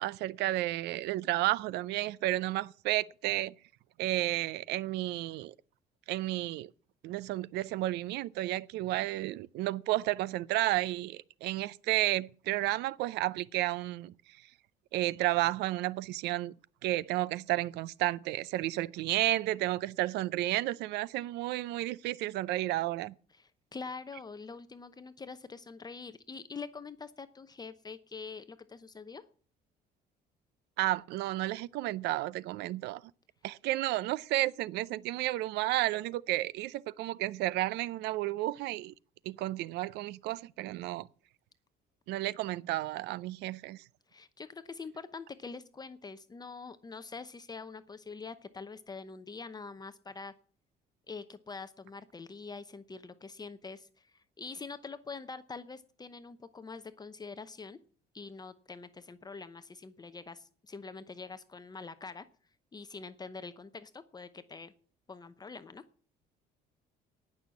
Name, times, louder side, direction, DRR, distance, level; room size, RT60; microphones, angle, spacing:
voice 1, 0.0-3.5 4.0-5.5 6.1-6.7 7.0-14.1 14.9-16.5 16.8-23.1 30.8-33.0 33.4-38.9 39.3-41.1 42.1-43.8, right 16 dB, 85° right, 0.5 m, -32 dB
voice 2, 23.3-29.2 44.1-50.3 51.1-57.8 58.1-62.3 62.7-64.7 65.1-65.8, left 4 dB, 25° left, 0.8 m, -45 dB
18.5 x 6.4 x 7.1 m
cardioid pair, 110°, 17 cm